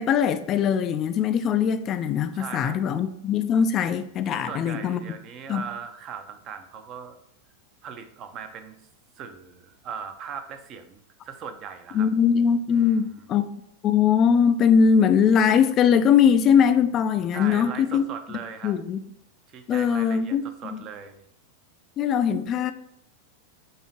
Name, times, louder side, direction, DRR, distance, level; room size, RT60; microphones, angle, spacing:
voice 1, 0.0-5.0 5.5-5.6 11.9-13.5 13.8-18.1 18.6-19.0 19.7-20.8 22.0-22.7, left 7 dB, 30° left, 0.4 m, -21 dB
voice 2, 2.3-2.8 4.3-7.2 7.8-8.7 9.2-12.1 12.7-13.2 17.3-18.8 19.5-21.2, right 7 dB, 35° right, 0.6 m, -39 dB
6.5 x 2.8 x 2.9 m
figure-of-eight pair, 90°, 0 cm